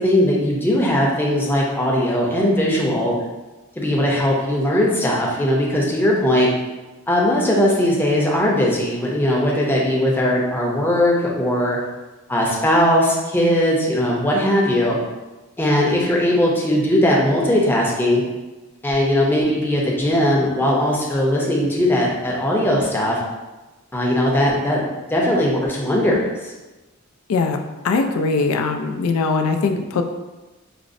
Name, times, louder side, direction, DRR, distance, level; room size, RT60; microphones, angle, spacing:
voice 1, 0.0-3.2 3.8-6.5 7.1-11.8 12.3-15.0 15.6-18.2 18.8-23.2 23.9-26.5, left 1 dB, 10° left, -4 dB, 0.6 m, -19 dB
voice 2, 27.8-30.0, left 4 dB, 85° left, 5 dB, 0.3 m, -21 dB
4.9 x 2.0 x 2.5 m, 1.1 s
head